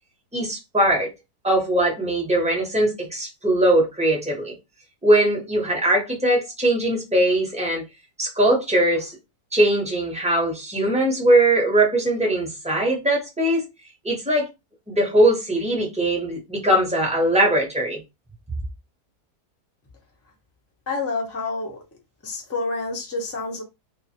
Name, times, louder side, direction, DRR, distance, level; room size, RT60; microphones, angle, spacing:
voice 1, 0.3-1.1 1.4-4.5 5.0-7.8 8.2-9.2 9.5-13.6 14.0-14.5 14.9-18.0, right 1 dB, 5° right, 0.7 m, -20 dB
voice 2, 20.9-21.8 22.2-23.6, left 3 dB, 25° left, 0.3 m, -28 dB
2.5 x 2.4 x 2.7 m
omnidirectional pair, 1.7 m